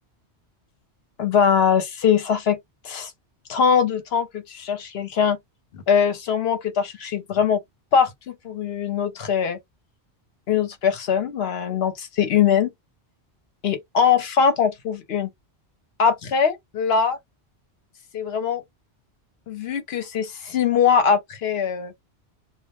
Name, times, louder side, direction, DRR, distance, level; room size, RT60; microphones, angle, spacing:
voice 1, 1.2-2.6 2.8-3.1 3.5-5.4 5.7-7.6 7.9-8.1 8.4-9.6 10.5-12.7 13.6-15.3 16.0-17.2 18.1-18.6 19.5-21.9, left 7 dB, 70° left, 0.9 m, -21 dB
2.2 x 2.0 x 2.9 m
omnidirectional pair, 1.1 m